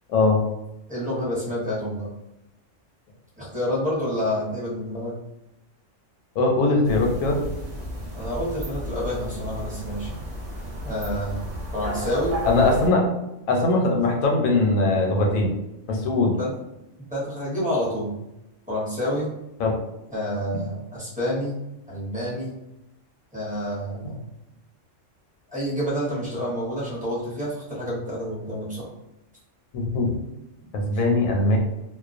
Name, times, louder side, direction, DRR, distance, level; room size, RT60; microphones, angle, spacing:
voice 1, 0.1-0.4 6.4-7.4 12.4-13.1 13.5-15.5 15.9-16.3 19.6-19.7 29.7-30.2 30.7-31.6, left 2 dB, 90° left, 1 dB, 1.0 m, -20 dB
voice 2, 0.9-2.1 3.4-5.2 8.1-10.1 10.8-11.4 11.7-12.4 16.4-16.6 17.1-18.2 18.7-19.3 20.1-21.5 21.9-22.5 23.3-24.2 25.5-28.9 30.9-31.0, equal, 10° right, -8 dB, 0.6 m, -28 dB
sound 1, 6.8-12.9, equal, 40° right, 0.8 m, -33 dB
2.3 x 2.1 x 2.4 m, 0.91 s
omnidirectional pair, 1.3 m